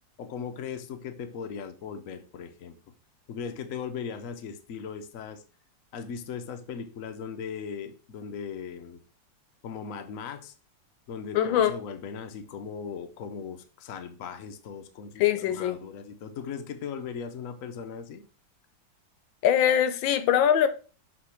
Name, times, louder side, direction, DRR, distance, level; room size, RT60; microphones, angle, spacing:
voice 1, 0.2-2.8 3.3-5.4 5.9-9.0 9.6-10.5 11.1-18.2, left 6 dB, 60° left, 0.9 m, -38 dB
voice 2, 11.3-11.7 15.2-15.8 19.4-20.7, left 10 dB, 85° left, 1.4 m, -22 dB
6.7 x 4.2 x 4.4 m
omnidirectional pair, 2.1 m